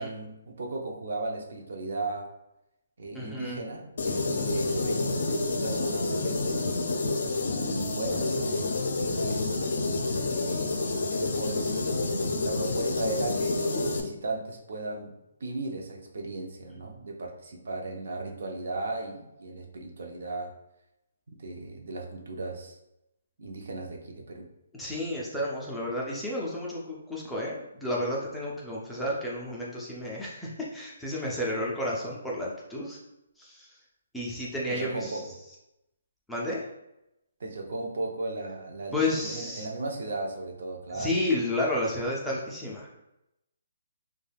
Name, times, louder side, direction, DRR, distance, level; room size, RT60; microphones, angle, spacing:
voice 1, 0.0-2.3 3.0-6.5 7.5-8.9 9.2-9.6 10.3-10.8 11.1-12.1 12.4-15.1 15.4-20.5 21.3-22.8 23.4-24.5 34.7-35.3 37.4-41.1, right 2 dB, 60° right, 1 dB, 0.5 m, -36 dB
voice 2, 3.1-3.6 24.8-33.0 33.4-33.7 34.1-35.2 36.3-36.7 38.9-39.7 40.9-42.9, left 1 dB, ahead, -6 dB, 0.3 m, -31 dB
sound 1, 4.0-14.0, left 3 dB, 65° left, 0.4 m, -28 dB
2.3 x 2.2 x 3.3 m, 0.87 s
hypercardioid pair, 165°, 0 cm